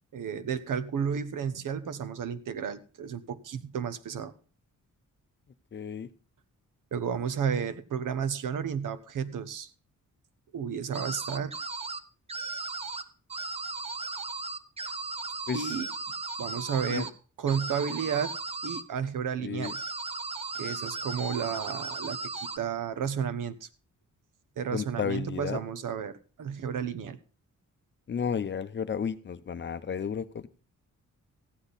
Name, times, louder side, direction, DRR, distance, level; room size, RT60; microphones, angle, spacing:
voice 1, 0.1-4.3 6.9-9.7 10.5-11.5 15.5-15.9 16.4-17.1 17.4-18.3 18.6-19.8 20.5-23.7 24.6-27.2, right 7 dB, 80° right, 13 dB, 1.0 m, -32 dB
voice 2, 5.7-6.1 15.5-15.7 16.9-17.0 19.4-19.7 24.7-25.6 28.1-30.5, left 7 dB, 35° left, 12 dB, 0.6 m, -32 dB
sound 1, 10.9-12.0 12.3-13.0 13.3-17.1 17.5-18.8 19.6-22.6, right 3 dB, 20° right, 0.6 m, -36 dB
14.5 x 10.0 x 4.1 m, 0.37 s
wide cardioid pair, 175°, 31 cm